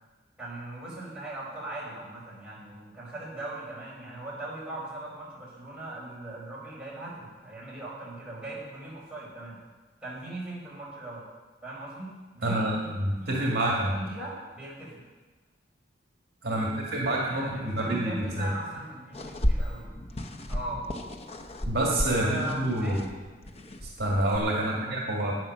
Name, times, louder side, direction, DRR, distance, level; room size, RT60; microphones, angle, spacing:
voice 1, 0.4-9.6 10.0-11.2 11.6-15.0 16.5-19.9 20.5-20.8 22.1-23.2 24.6-25.0, right 2 dB, 5° right, -7 dB, 4.9 m, -40 dB
voice 2, 12.4-14.1 16.4-18.5 21.7-23.0 24.0-25.4, right 1 dB, 55° right, -3 dB, 2.1 m, -27 dB
sound 1, 19.1-24.4, equal, 30° left, 0.7 m, -33 dB
11.0 x 9.3 x 6.6 m, 1.3 s
head